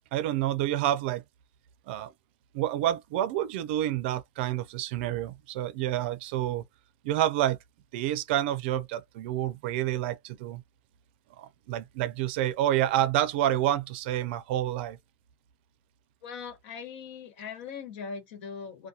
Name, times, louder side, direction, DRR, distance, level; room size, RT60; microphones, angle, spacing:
voice 1, 0.1-1.2 1.9-2.1 2.5-6.6 7.0-7.6 7.9-10.6 11.4-15.0, right 12 dB, 70° right, 0.4 m, -28 dB
voice 2, 16.2-18.9, left 6 dB, 70° left, 1.3 m, -40 dB
2.3 x 2.2 x 2.7 m
cardioid pair, 175°, 6 cm